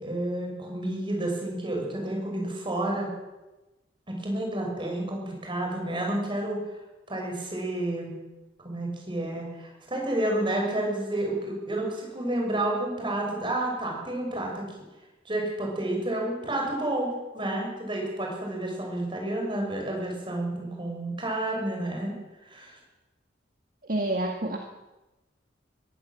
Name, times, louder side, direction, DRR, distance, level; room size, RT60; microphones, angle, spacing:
voice 1, 0.0-3.1 4.1-6.6 7.1-8.2 8.6-14.6 15.2-22.1 22.4-22.8, right 1 dB, 25° right, 1 dB, 6.7 m, -30 dB
voice 2, 23.8-24.6, right 1 dB, 45° right, 2 dB, 1.9 m, -28 dB
22.0 x 15.5 x 7.7 m, 1.1 s
head